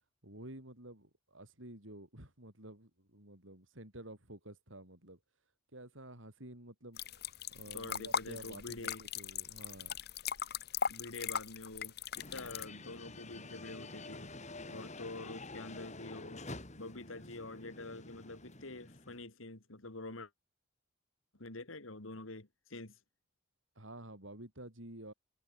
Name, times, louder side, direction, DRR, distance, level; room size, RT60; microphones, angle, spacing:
voice 1, 0.2-5.2 5.7-10.0 23.8-25.1, right 1 dB, 70° right, 6.9 m, -51 dB
sound 1, 7.0-12.7, left 7 dB, 50° left, 1.2 m, -39 dB
voice 2, 7.7-9.0 10.9-14.3 14.7-16.5 16.8-20.3 21.4-23.0, left 2 dB, 80° left, 2.6 m, -47 dB
sound 2, 12.1-19.2, left 2 dB, 35° left, 5.9 m, -49 dB
head